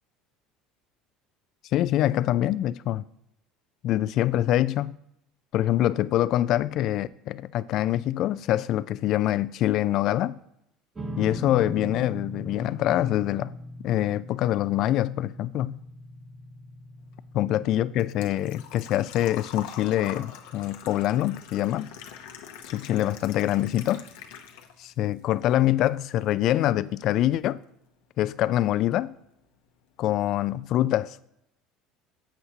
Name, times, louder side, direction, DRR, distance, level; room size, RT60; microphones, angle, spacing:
voice 1, 1.7-3.0 3.8-4.9 5.5-10.4 11.2-13.5 13.8-15.8 17.3-21.9 22.7-24.0 24.8-27.6 28.2-29.1 30.0-31.2, left 13 dB, 60° left, 0.3 m, -25 dB
sound 1, 10.9-23.5, equal, 20° right, 1.1 m, -42 dB
Engine / Trickle dribble / Fill (with liquid), 17.0-25.0 25.3-26.3 26.6-26.7 28.6-28.7 28.9-29.2 29.6-29.7 29.9-30.0, left 9 dB, 85° left, 0.8 m, -44 dB
10.0 x 7.8 x 2.8 m
supercardioid pair, 100°, 0 cm